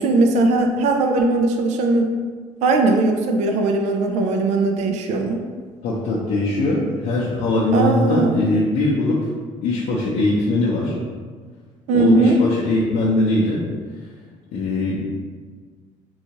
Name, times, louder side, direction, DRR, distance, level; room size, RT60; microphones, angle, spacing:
voice 1, 0.0-2.1 2.6-5.4 7.7-8.3 11.9-12.4, right 2 dB, 65° right, 3 dB, 0.4 m, -18 dB
voice 2, 5.8-9.3 9.6-11.0 11.9-13.6 14.5-15.0, left 1 dB, 70° left, -6 dB, 0.6 m, -21 dB
3.8 x 2.4 x 2.9 m, 1.5 s
cardioid pair, 135°, 13 cm